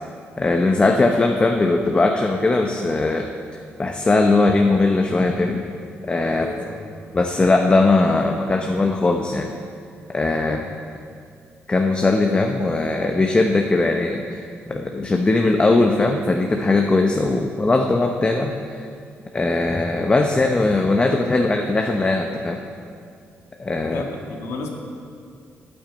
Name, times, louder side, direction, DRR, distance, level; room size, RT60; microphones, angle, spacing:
voice 1, 0.4-3.3 3.8-5.6 6.0-6.5 7.1-9.5 10.1-10.6 11.7-18.8 19.3-22.6 23.6-24.0, left 3 dB, 25° left, 3 dB, 0.8 m, -19 dB
voice 2, 6.3-6.9 10.4-10.8 23.8-24.7, left 3 dB, 85° left, 1 dB, 1.6 m, -33 dB
9.0 x 8.8 x 7.9 m, 2.3 s
cardioid pair, 90°, 4 cm